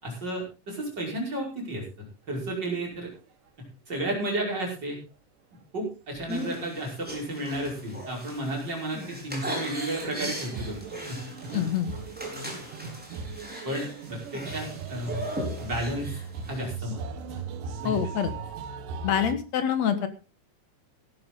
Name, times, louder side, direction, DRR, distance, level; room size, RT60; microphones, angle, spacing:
voice 1, 0.0-3.1 3.9-5.0 5.7-10.8 11.1-11.6 13.6-15.2 15.6-16.2 16.5-17.0 17.8-17.9, right 1 dB, 30° right, -1 dB, 6.1 m, -32 dB
sound 1, 6.1-6.3 7.7-8.0 8.3-8.4 10.1-19.4, right 5 dB, 80° right, 2.9 m, -38 dB
sound 2, 6.3-16.7, equal, 5° right, 4.2 m, -39 dB
voice 2, 11.5-11.9 17.8-18.3 19.0-20.1, left 9 dB, 60° left, 10 dB, 2.5 m, -26 dB
17.0 x 11.5 x 3.8 m, 0.32 s
omnidirectional pair, 3.8 m